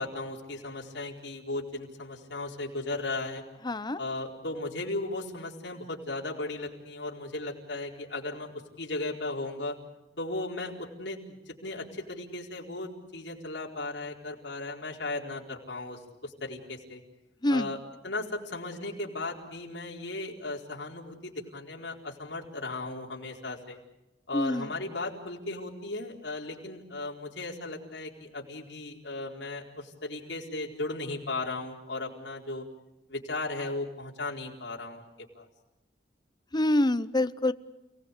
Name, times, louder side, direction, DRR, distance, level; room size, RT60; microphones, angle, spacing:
voice 1, 0.0-3.4 3.9-9.8 10.2-17.0 17.5-17.8 18.0-23.8 24.3-32.6 33.1-35.1 35.3-35.4, left 2 dB, 75° left, -2 dB, 4.5 m, -36 dB
voice 2, 3.6-4.0 17.4-17.7 24.3-24.7 36.5-37.5, left 1 dB, 25° left, 13 dB, 0.8 m, -26 dB
30.0 x 18.5 x 8.4 m, 0.96 s
head